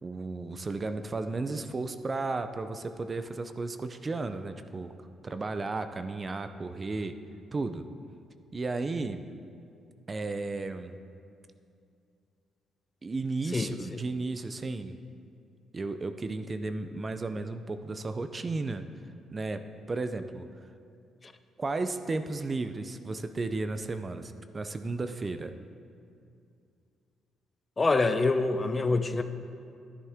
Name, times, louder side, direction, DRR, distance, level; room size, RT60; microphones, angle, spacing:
voice 1, 0.0-4.9 5.2-7.2 7.5-7.9 8.5-9.2 10.1-11.0 13.0-15.0 15.7-18.8 19.3-20.5 21.6-25.5, right 3 dB, 30° right, 9 dB, 0.5 m, -34 dB
voice 2, 27.8-29.2, left 3 dB, 30° left, 10 dB, 0.5 m, -25 dB
11.0 x 10.0 x 3.6 m, 2.5 s
cardioid pair, 90°, 0 cm